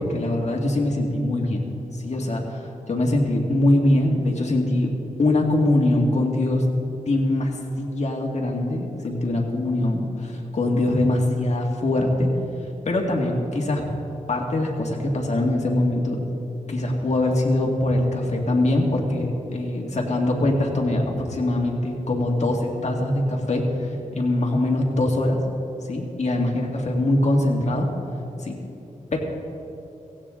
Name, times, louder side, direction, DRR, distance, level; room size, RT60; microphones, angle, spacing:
voice 1, 0.0-1.6 1.9-4.9 5.2-6.6 6.9-12.3 12.9-13.8 14.3-16.2 16.7-25.4 25.9-27.9 28.4-28.6 29.1-29.2, left 1 dB, 55° left, 0 dB, 1.9 m, -23 dB
17.0 x 16.0 x 3.8 m, 2.9 s
wide cardioid pair, 135°, 14 cm